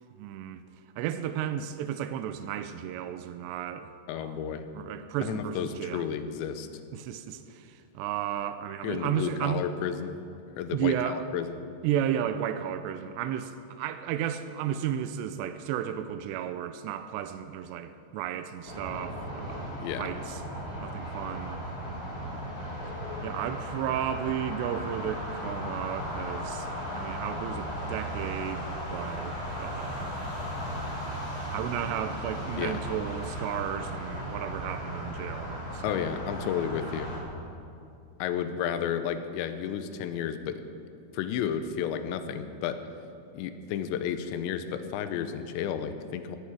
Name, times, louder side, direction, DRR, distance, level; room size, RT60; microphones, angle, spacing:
voice 1, 0.2-0.6 1.0-6.2 6.9-9.6 10.7-11.2 11.8-19.7 20.0-20.4 20.8-21.6 22.2-22.6 23.2-26.7 26.9-30.2 31.5-35.9, right 10 dB, 90° right, 10 dB, 2.5 m, -33 dB
voice 2, 4.1-4.7 5.2-6.7 8.8-10.1 10.6-11.5 19.8-20.1 32.6-32.8 35.8-37.1 38.2-40.6 41.1-42.8 43.3-46.4, left 8 dB, 80° left, 9 dB, 2.8 m, -32 dB
sound 1, 18.7-37.2, equal, 30° left, 4.0 m, -36 dB
18.0 x 14.0 x 4.8 m, 2.5 s
omnidirectional pair, 5.6 m